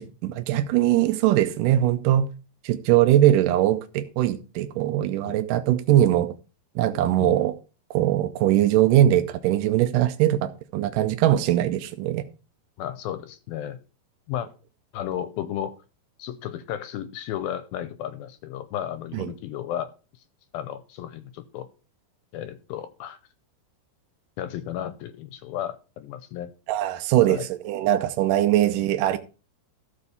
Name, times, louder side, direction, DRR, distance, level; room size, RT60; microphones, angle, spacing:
voice 1, 0.0-2.3 2.6-6.3 6.8-7.5 7.9-12.2 19.1-19.3 26.7-29.2, right 12 dB, 80° right, 1.9 m, -21 dB
voice 2, 6.9-7.4 12.8-13.8 14.3-14.5 14.9-15.8 16.2-19.9 20.5-21.7 22.3-23.2 24.4-26.5 27.3-27.4 28.7-28.8, left 11 dB, 75° left, 2.4 m, -33 dB
13.5 x 4.7 x 6.9 m
omnidirectional pair, 4.6 m